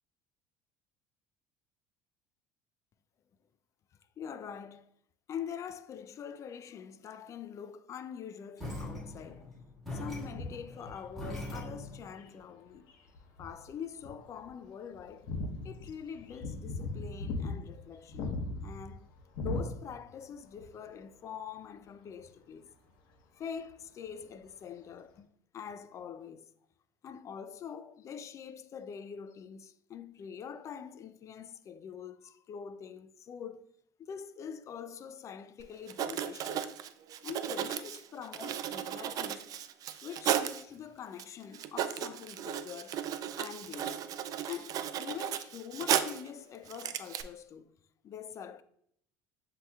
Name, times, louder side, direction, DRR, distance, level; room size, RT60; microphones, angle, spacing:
voice 1, 4.2-4.9 5.3-9.5 9.9-12.9 13.4-15.3 15.6-18.4 18.6-19.1 19.4-22.7 23.3-25.3 25.5-26.5 27.0-33.7 34.1-36.7 37.2-39.5 40.0-43.0 43.4-44.0 44.5-47.7 48.0-48.6, left 7 dB, 40° left, 0.4 m, -44 dB
sound 1, 8.6-12.1, left 1 dB, ahead, 1.8 m, -41 dB
sound 2, 10.2-12.3 12.9-13.7 14.0-14.1 14.4-14.5 14.9-20.2 20.5-20.7 22.2-22.3, left 2 dB, 65° left, 0.9 m, -38 dB
Writing, 35.6-35.7 35.9-40.6 41.2-41.3 41.5-46.3 46.7-47.2, right 10 dB, 50° right, 0.4 m, -35 dB
7.4 x 2.8 x 2.3 m
supercardioid pair, 95°, 8 cm